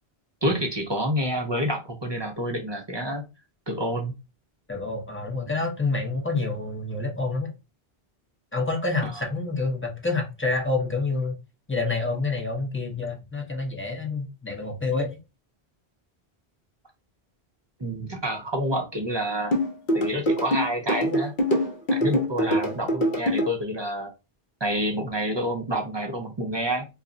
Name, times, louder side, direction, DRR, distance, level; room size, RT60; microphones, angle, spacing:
voice 1, 0.4-3.2 3.7-4.1 17.8-19.5 19.9-21.3 21.9-24.1 24.6-26.9, equal, 35° right, 0.5 m, -28 dB
voice 2, 4.7-7.5 8.5-11.3 11.7-15.2 22.4-22.8, left 3 dB, 15° left, 0.5 m, -28 dB
sound 1, 19.5-23.5, equal, 55° left, 0.8 m, -23 dB
2.3 x 2.1 x 3.7 m
omnidirectional pair, 1.0 m